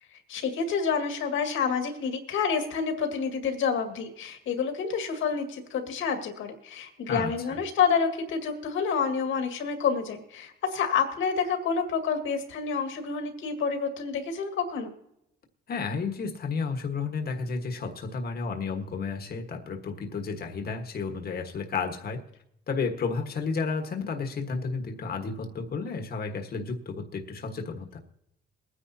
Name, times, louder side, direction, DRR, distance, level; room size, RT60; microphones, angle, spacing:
voice 1, 0.3-14.9, left 6 dB, 80° left, 5 dB, 2.1 m, -28 dB
voice 2, 7.1-7.6 15.7-22.2 22.7-28.0, left 4 dB, 50° left, 4 dB, 1.5 m, -32 dB
21.5 x 9.9 x 2.8 m, 0.81 s
cardioid pair, 90°, 20 cm